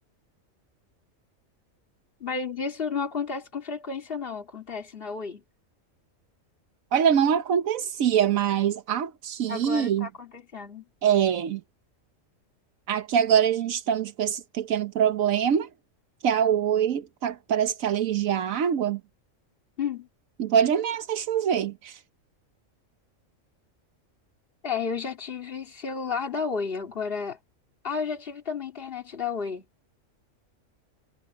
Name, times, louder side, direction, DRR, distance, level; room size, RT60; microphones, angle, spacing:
voice 1, 2.2-5.4 9.5-10.8 19.8-20.1 24.6-27.4 27.8-29.6, left 5 dB, 45° left, 2.7 m, -32 dB
voice 2, 6.9-10.1 11.0-11.6 12.9-15.7 16.2-19.0 20.4-22.0, right 8 dB, 85° right, 1.3 m, -24 dB
omnidirectional pair, 1.4 m